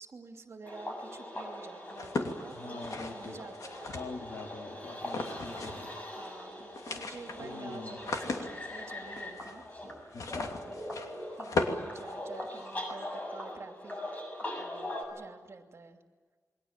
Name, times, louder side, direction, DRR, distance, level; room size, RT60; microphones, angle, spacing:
voice 1, 0.0-3.9 5.9-9.6 10.5-11.0 11.4-14.0 14.6-16.0, right 4 dB, 55° right, 4 dB, 2.8 m, -49 dB
sound 1, 0.6-15.0, left 1 dB, 25° left, 7.1 m, -41 dB
sound 2, 1.9-4.4 5.0-5.9 6.2-6.3 6.6-12.7, left 3 dB, 85° left, 2.8 m, -37 dB
voice 2, 2.5-3.4 3.9-5.9 7.4-8.0 10.1-10.5, left 3 dB, 70° left, 3 dB, 3.2 m, -44 dB
28.5 x 23.0 x 7.5 m, 1.4 s
wide cardioid pair, 135°, 6 cm